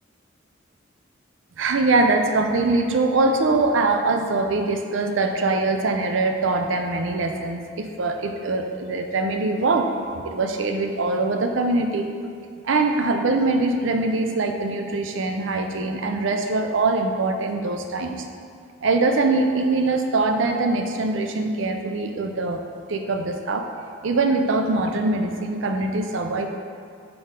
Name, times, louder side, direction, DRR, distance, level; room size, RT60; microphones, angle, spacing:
voice 1, 1.6-9.9 10.2-12.1 12.6-18.2 18.8-22.6 22.9-23.7 24.0-26.5, right 3 dB, 65° right, 5 dB, 0.5 m, -23 dB
6.7 x 5.4 x 3.7 m, 2.3 s
head